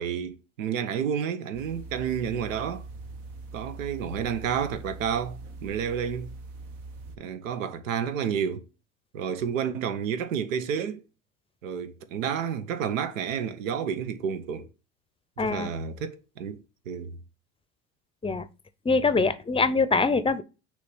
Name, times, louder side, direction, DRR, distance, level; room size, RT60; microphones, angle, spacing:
voice 1, 0.0-2.8 3.5-6.3 7.2-8.6 9.1-11.0 11.6-14.7 15.4-17.2, right 7 dB, 90° right, 0.8 m, -30 dB
sound 1, 1.5-7.2, right 3 dB, 70° right, 1.2 m, -42 dB
voice 2, 15.4-15.7 18.2-18.5 18.8-20.4, left 4 dB, 15° left, 0.6 m, -23 dB
6.3 x 3.3 x 5.4 m
hypercardioid pair, 80°, 39 cm